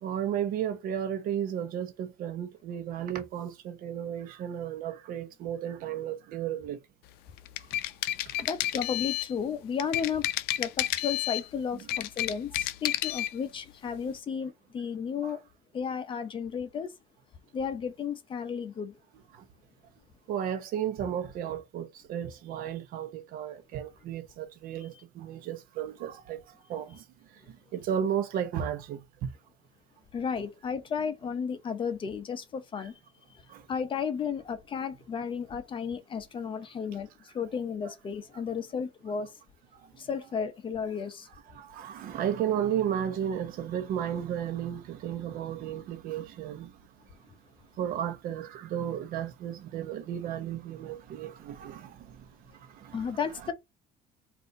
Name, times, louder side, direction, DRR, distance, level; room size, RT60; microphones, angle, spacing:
voice 1, 0.0-6.8 15.2-15.3 19.3-19.4 20.3-26.4 26.7-27.0 27.7-29.3 33.5-33.6 41.5-46.7 47.8-52.2 52.7-53.0, right 9 dB, 60° right, 0.9 m, -33 dB
sound 1, 7.4-9.3 9.8-11.5 11.8-13.3, left 15 dB, 75° left, 0.4 m, -31 dB
voice 2, 8.4-10.3 10.6-15.4 15.7-16.9 17.5-18.9 24.9-25.0 30.1-32.9 33.7-37.1 37.3-39.3 40.0-41.3 52.9-53.5, left 6 dB, 30° left, 0.7 m, -33 dB
4.1 x 2.6 x 4.7 m
cardioid pair, 130°, 17 cm